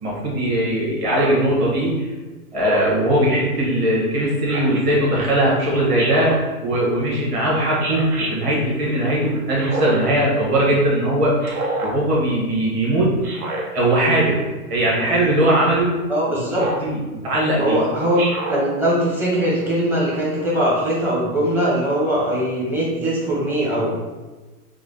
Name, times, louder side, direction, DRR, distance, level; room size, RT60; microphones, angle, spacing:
voice 1, 0.0-2.1 2.5-11.4 11.8-13.5 13.7-14.4 14.7-16.0 16.3-17.8, right 1 dB, 25° right, -5 dB, 1.3 m, -20 dB
Speech synthesizer, 1.1-1.4 2.6-3.1 4.5-4.8 6.0-6.4 7.8-8.3 9.6-10.1 11.4-12.0 13.2-13.6 14.9-15.2 16.5-16.9 18.2-18.6, right 2 dB, 70° right, 1.1 m, -27 dB
voice 2, 16.1-16.6 17.6-18.2 18.5-23.9, right 1 dB, 5° right, -7 dB, 0.7 m, -21 dB
4.9 x 2.2 x 3.8 m, 1.2 s
hypercardioid pair, 145°, 44 cm